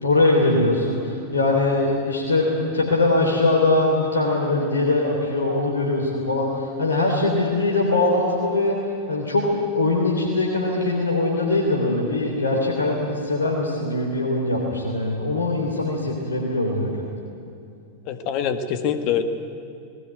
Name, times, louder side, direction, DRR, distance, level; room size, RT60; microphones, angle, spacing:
voice 1, 0.0-8.8 9.1-9.4 9.8-17.1, left 2 dB, 75° left, -2 dB, 3.5 m, -22 dB
voice 2, 18.1-19.2, left 8 dB, 40° left, 9 dB, 1.5 m, -24 dB
20.0 x 18.0 x 8.9 m, 2.6 s
figure-of-eight pair, 90°, 0 cm